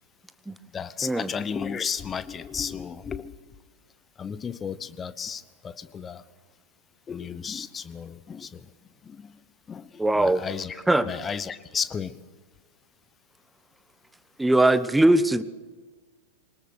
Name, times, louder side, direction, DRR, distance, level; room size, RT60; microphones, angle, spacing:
voice 1, 0.7-3.4 4.2-6.2 7.1-8.7 9.0-9.4 9.7-10.8 11.1-12.1, left 6 dB, 20° left, 15 dB, 1.0 m, -33 dB
voice 2, 10.0-10.4 10.9-11.1 14.4-15.4, right 1 dB, 5° right, 15 dB, 0.9 m, -20 dB
23.5 x 20.0 x 6.6 m, 1.4 s
figure-of-eight pair, 90°, 0 cm